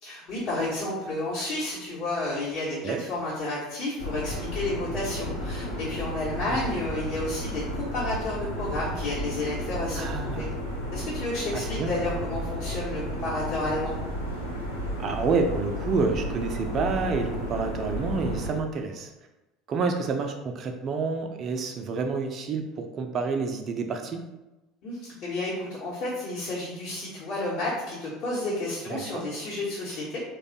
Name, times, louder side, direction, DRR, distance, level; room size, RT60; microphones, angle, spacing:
voice 1, 0.0-10.5 10.9-13.9 24.8-30.2, left 2 dB, 45° left, -9 dB, 1.0 m, -31 dB
sound 1, 4.0-18.6, equal, 85° left, 0.8 m, -33 dB
voice 2, 6.5-6.9 10.0-10.5 11.5-11.9 15.0-19.1 19.7-24.2 28.9-29.2, right 4 dB, 40° right, 5 dB, 0.5 m, -29 dB
3.2 x 2.3 x 3.9 m, 1.0 s
figure-of-eight pair, 65°, 0 cm